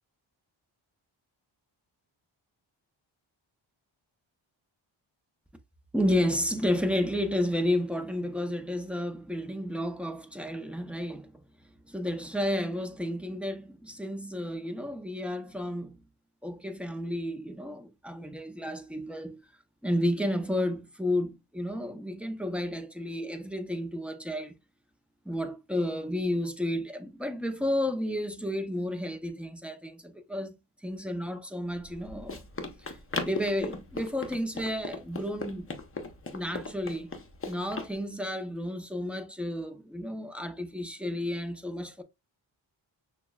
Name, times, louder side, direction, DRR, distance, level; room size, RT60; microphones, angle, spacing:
voice 1, 5.9-11.3 11.9-16.0 16.4-19.4 19.8-24.5 25.3-30.5 30.8-32.4 32.9-35.7 36.3-37.1 37.5-42.0, left 1 dB, 5° right, 0.7 m, -31 dB
Run, 31.7-37.9, left 3 dB, 25° left, 0.9 m, -38 dB
6.0 x 2.3 x 2.4 m
cardioid pair, 60°, 48 cm